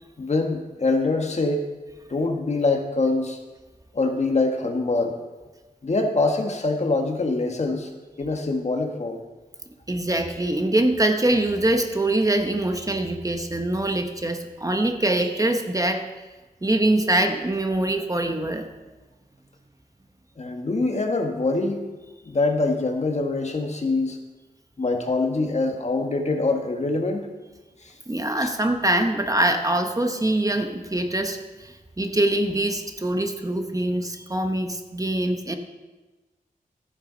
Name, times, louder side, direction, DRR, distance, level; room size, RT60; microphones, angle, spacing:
voice 1, 0.2-1.7 2.1-3.4 3.9-5.2 5.8-7.9 8.2-9.2 20.4-21.8 22.2-24.2 24.8-27.3 27.8-27.9 28.4-28.5, left 3 dB, 45° left, 4 dB, 1.5 m, -24 dB
voice 2, 9.9-16.0 16.6-18.6 28.1-35.6, right 1 dB, 20° right, 5 dB, 1.0 m, -23 dB
14.0 x 10.0 x 3.9 m, 1.2 s
wide cardioid pair, 90°, 15 cm